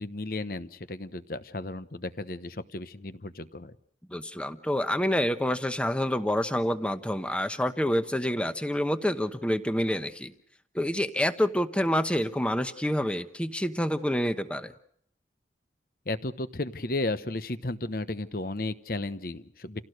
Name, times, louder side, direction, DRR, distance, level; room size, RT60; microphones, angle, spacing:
voice 1, 0.0-3.7 16.1-19.8, left 2 dB, 50° left, 13 dB, 1.0 m, -34 dB
voice 2, 4.1-10.3 10.7-14.7, equal, 5° left, 10 dB, 1.0 m, -27 dB
29.0 x 17.0 x 6.5 m, 0.67 s
head